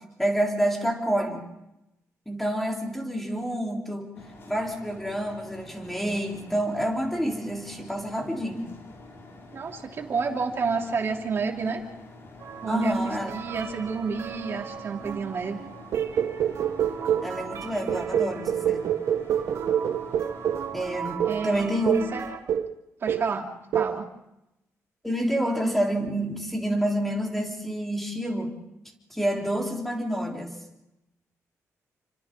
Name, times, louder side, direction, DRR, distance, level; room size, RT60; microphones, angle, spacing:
voice 1, 0.2-1.4 2.3-4.1 4.5-8.7 12.7-13.3 17.2-18.9 20.7-21.9 25.0-28.5 29.1-30.5, equal, 5° left, 0 dB, 3.6 m, -28 dB
sound 1, 4.1-20.7, left 2 dB, 50° left, 4.8 m, -48 dB
voice 2, 9.5-11.8 12.6-15.6 21.2-21.6 22.1-22.2 23.0-24.1, right 5 dB, 45° right, 1 dB, 3.1 m, -30 dB
sound 2, 12.4-22.4, right 7 dB, 60° right, 2.4 m, -39 dB
sound 3, 15.9-17.4 17.9-20.7 21.2-21.4 21.9-22.1 22.5-22.8 23.1-23.4 23.7-24.0, right 9 dB, 80° right, 1.0 m, -26 dB
29.5 x 26.0 x 3.8 m, 0.88 s
wide cardioid pair, 140°, 6 cm